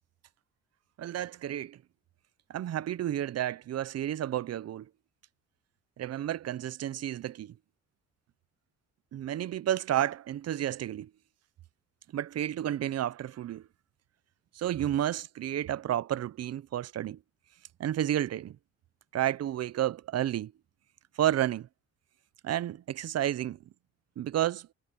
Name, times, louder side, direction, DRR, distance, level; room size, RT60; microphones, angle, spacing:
voice 1, 1.0-1.8 2.5-4.9 6.0-7.5 9.1-11.1 12.1-13.7 14.5-17.2 17.8-18.6 19.1-20.5 21.2-21.7 22.4-23.6 24.2-24.7, right 11 dB, 55° right, 0.7 m, -31 dB
cardioid pair, 90°, 30 cm